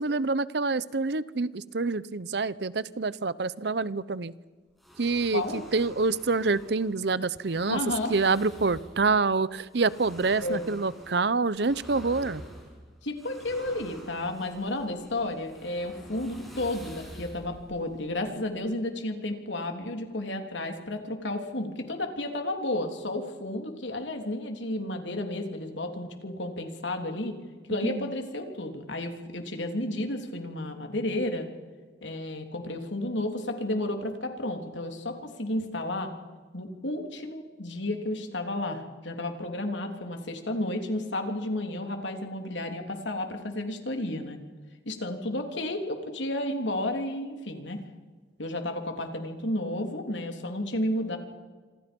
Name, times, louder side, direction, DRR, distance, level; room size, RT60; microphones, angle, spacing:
voice 1, 0.0-4.3 5.0-7.8 8.1-12.4 27.8-28.1, right 3 dB, 60° right, 18 dB, 0.7 m, -27 dB
sound 1, 4.8-18.7, equal, ahead, 6.6 m, -48 dB
voice 2, 5.3-5.6 7.7-8.1 10.4-10.7 13.0-27.4 27.7-31.5 32.0-36.1 36.5-44.4 44.9-47.8 48.4-51.2, left 1 dB, 80° left, 4 dB, 3.4 m, -32 dB
26.5 x 25.5 x 5.4 m, 1.4 s
head